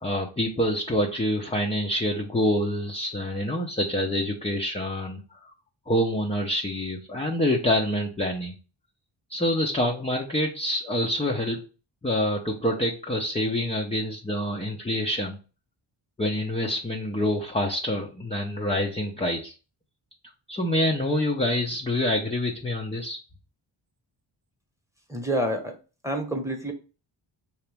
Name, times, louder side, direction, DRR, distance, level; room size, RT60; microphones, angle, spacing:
voice 1, 0.0-5.2 5.9-8.5 9.3-11.6 12.0-15.4 16.2-19.5 20.5-23.2, left 1 dB, 15° left, -1 dB, 0.7 m, -26 dB
voice 2, 25.1-25.7 26.0-26.7, right 1 dB, 5° right, 3 dB, 1.1 m, -28 dB
4.7 x 3.0 x 3.4 m, 0.34 s
cardioid pair, 75°, 49 cm